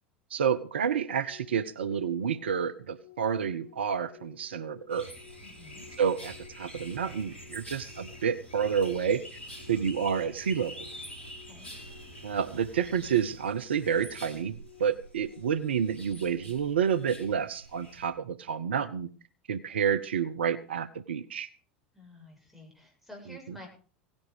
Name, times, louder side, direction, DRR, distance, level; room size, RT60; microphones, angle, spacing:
voice 1, 0.3-5.1 6.0-9.2 9.7-10.7 12.2-19.1 19.5-21.5 23.3-23.6, right 7 dB, 75° right, 16 dB, 0.7 m, -29 dB
sound 1, 0.8-16.7, left 18 dB, 40° left, 3.0 m, -57 dB
sound 2, 4.9-18.1, equal, 85° left, 4.4 m, -47 dB
voice 2, 5.4-5.9 11.4-11.7 21.9-23.7, left 1 dB, ahead, 0 dB, 7.7 m, -50 dB
17.0 x 10.5 x 5.1 m, 0.41 s
figure-of-eight pair, 80°, 6 cm